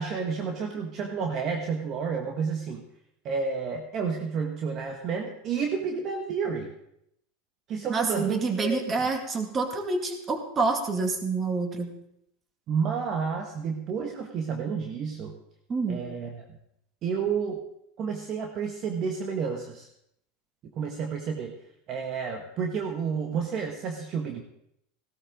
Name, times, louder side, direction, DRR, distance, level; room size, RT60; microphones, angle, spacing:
voice 1, 0.0-2.8 3.2-6.7 7.7-8.9 12.7-15.4 15.9-16.5 17.0-17.6 18.0-19.9 20.7-21.5 21.9-24.4, right 5 dB, 40° right, 3 dB, 1.5 m, -30 dB
voice 2, 7.9-11.9 15.7-16.1, right 3 dB, 25° right, 4 dB, 2.2 m, -27 dB
16.0 x 13.0 x 3.8 m, 0.77 s
supercardioid pair, 120°, 0 cm